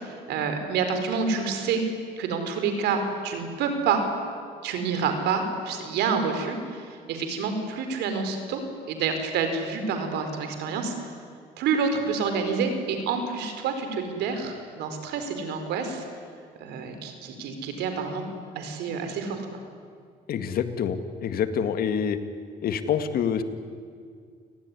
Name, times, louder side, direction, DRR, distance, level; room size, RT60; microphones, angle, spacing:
voice 1, 0.0-1.8 2.2-4.1 4.6-8.6 8.9-10.9 11.6-16.0 16.6-18.2 18.5-19.4, right 5 dB, 80° right, 6 dB, 4.6 m, -28 dB
voice 2, 20.3-22.2 22.6-23.4, left 8 dB, 60° left, 9 dB, 2.0 m, -26 dB
29.0 x 19.5 x 9.9 m, 2.1 s
cardioid pair, 110°, 17 cm